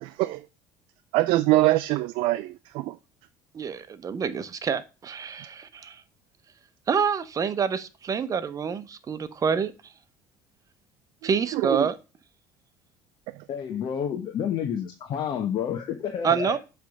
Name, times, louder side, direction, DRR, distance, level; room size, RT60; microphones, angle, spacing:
voice 1, 0.0-0.4 1.1-2.9 11.5-11.9, right 18 dB, 70° right, 0.4 m, -23 dB
voice 2, 3.5-6.0 6.9-9.7 11.2-11.9 16.2-16.6, right 6 dB, 35° right, 0.9 m, -27 dB
voice 3, 13.5-16.6, left 8 dB, 55° left, 1.0 m, -29 dB
7.5 x 3.4 x 5.4 m
hypercardioid pair, 75°, 9 cm